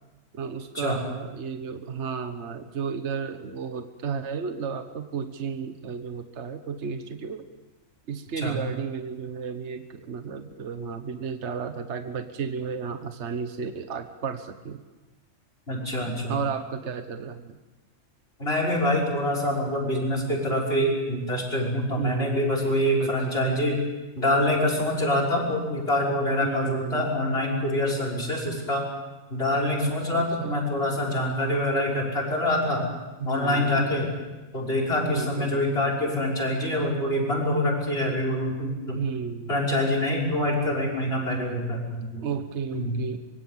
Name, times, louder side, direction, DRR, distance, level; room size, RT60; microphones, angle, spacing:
voice 1, 0.3-7.5 8.1-14.8 16.3-17.6 22.0-22.4 23.0-23.4 26.4-27.1 29.8-30.6 33.2-33.9 35.1-35.6 38.9-39.6 42.2-43.2, right 6 dB, 55° right, 8 dB, 1.4 m, -33 dB
voice 2, 15.7-16.4 18.4-23.8 24.2-28.8 29.3-32.9 33.2-34.1 34.5-39.0 39.5-42.2 42.7-42.9, left 1 dB, 45° left, 0 dB, 6.2 m, -25 dB
25.0 x 23.5 x 7.3 m, 1.2 s
omnidirectional pair, 1.4 m